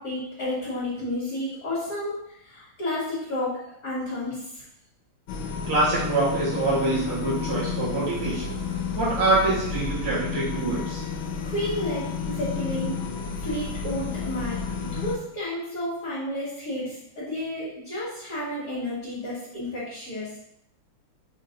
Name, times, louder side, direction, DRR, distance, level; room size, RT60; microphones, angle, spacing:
voice 1, 0.0-3.6 3.8-4.6 11.4-12.9 13.4-20.4, left 1 dB, 45° left, -13 dB, 2.9 m, -31 dB
sound 1, 5.3-15.2, left 5 dB, 90° left, 1.7 m, -31 dB
voice 2, 5.7-8.6 8.9-11.0, right 2 dB, 80° right, -8 dB, 2.9 m, -25 dB
6.4 x 3.8 x 4.1 m, 0.79 s
omnidirectional pair, 2.4 m